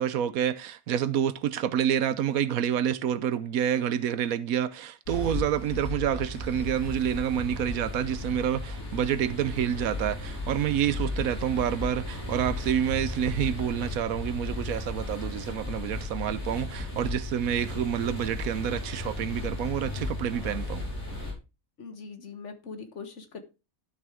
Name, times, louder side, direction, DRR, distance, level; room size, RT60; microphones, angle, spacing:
voice 1, 0.0-20.8, right 9 dB, 80° right, 1.1 m, -28 dB
sound 1, 5.1-21.3, left 2 dB, 70° left, 5.6 m, -35 dB
voice 2, 21.8-23.4, left 5 dB, 55° left, 1.6 m, -41 dB
12.0 x 6.2 x 3.4 m
omnidirectional pair, 1.5 m